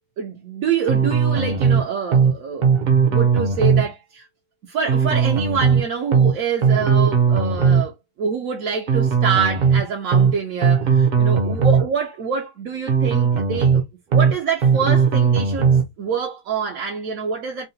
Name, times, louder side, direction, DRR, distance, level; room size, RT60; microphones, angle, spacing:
voice 1, 0.2-2.7 3.1-4.3 4.7-13.8 14.1-17.7, right 6 dB, 75° right, 1.0 m, -26 dB
sound 1, 0.9-1.8 2.1-2.3 2.6-3.9 4.9-5.8 6.1-6.3 6.6-7.9 8.9-9.8 10.1-10.3 10.6-11.9 12.9-13.8 14.1-14.3 14.6-15.9, right 6 dB, 50° right, 0.6 m, -17 dB
3.7 x 2.1 x 2.6 m
omnidirectional pair, 1.5 m